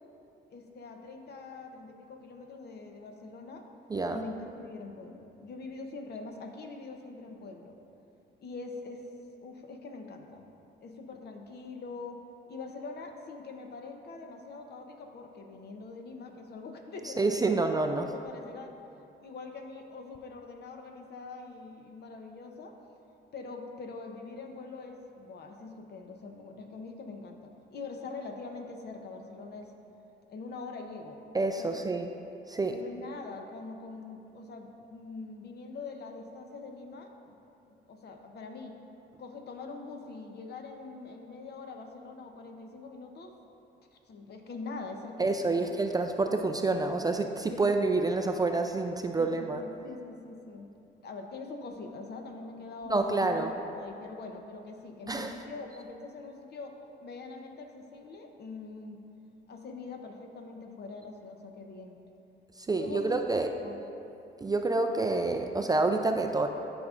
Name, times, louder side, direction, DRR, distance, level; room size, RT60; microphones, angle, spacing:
voice 1, 0.5-3.6 4.1-7.8 8.4-9.0 9.4-10.5 10.8-12.2 12.5-18.7 19.2-22.7 23.3-29.7 30.3-31.2 31.6-31.8 32.7-37.4 37.9-38.7 39.2-43.3 43.9-45.7 47.5-47.7 49.2-50.7 51.0-56.7 57.0-59.0 59.5-62.0 62.8-63.2 63.6-63.9, left 3 dB, 55° left, 4 dB, 0.8 m, -43 dB
voice 2, 3.9-4.2 17.0-18.1 31.3-32.1 32.5-32.8 45.2-49.6 52.9-53.5 55.1-55.4 62.6-63.5 64.4-66.5, right 3 dB, 20° right, 5 dB, 0.3 m, -28 dB
11.5 x 5.1 x 2.4 m, 2.8 s
cardioid pair, 90°, 20 cm